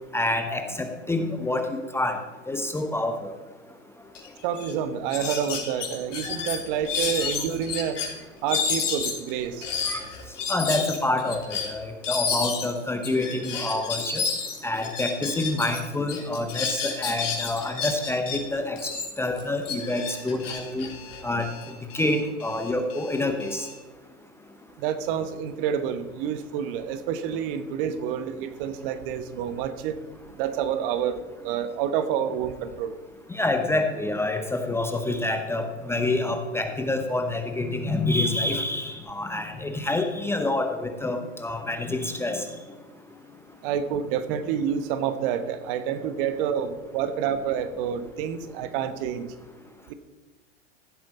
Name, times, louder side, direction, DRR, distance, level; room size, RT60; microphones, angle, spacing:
voice 1, 0.1-2.2 2.5-3.3 5.2-5.3 6.3-6.4 7.2-7.3 9.9-10.0 10.5-14.2 14.6-18.8 19.2-20.9 21.2-21.5 21.9-23.7 33.3-42.5, left 2 dB, 5° left, 5 dB, 0.7 m, -27 dB
sound 1, 4.1-4.3 4.5-4.7 5.1-8.1 8.5-15.8 16.1-18.4 18.8-21.6, left 6 dB, 75° left, 3.4 m, -30 dB
voice 2, 4.4-8.0 8.4-9.7 24.8-30.0 30.4-32.9 43.6-49.3 49.9-50.0, right 8 dB, 45° right, 11 dB, 1.0 m, -28 dB
Alarm, 19.9-23.7, left 6 dB, 40° left, 3.6 m, -46 dB
15.5 x 7.7 x 4.1 m, 1.3 s
hypercardioid pair, 110°, 38 cm